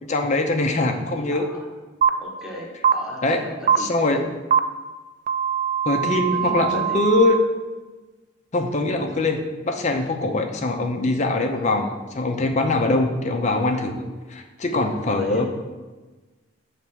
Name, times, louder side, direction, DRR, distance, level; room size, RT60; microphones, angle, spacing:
voice 1, 0.0-1.5 3.2-3.4 3.8-4.2 5.9-7.4 8.5-14.0 14.3-15.5, left 2 dB, 35° left, 4 dB, 0.5 m, -22 dB
voice 2, 1.3-1.7 2.1-4.1 6.1-7.1 11.5-11.8 14.9-15.5, equal, ahead, -3 dB, 1.0 m, -38 dB
sound 1, 2.0-2.1 2.8-2.9 3.7-3.8 4.5-4.6 5.3-7.4, right 8 dB, 35° right, 0.3 m, -21 dB
7.0 x 3.3 x 6.1 m, 1.3 s
head